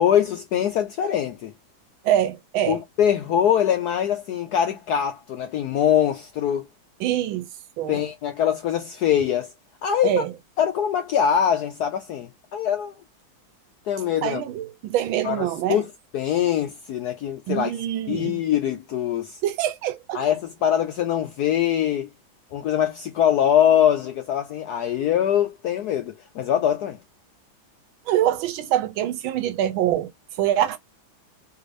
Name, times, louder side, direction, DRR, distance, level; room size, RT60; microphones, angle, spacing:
voice 1, 0.0-1.5 2.7-6.7 7.9-9.5 9.8-10.2 10.6-13.0 13.9-14.4 15.2-17.7 18.1-19.4 20.1-22.1 22.5-27.0, left 9 dB, 75° left, 0.9 m, -23 dB
voice 2, 2.0-2.8 7.0-7.5 7.8-8.0 10.0-10.3 14.2-15.8 17.5-18.4 19.4-20.2 28.1-30.1 30.4-30.8, right 11 dB, 85° right, 1.4 m, -24 dB
3.4 x 2.5 x 3.1 m
omnidirectional pair, 2.2 m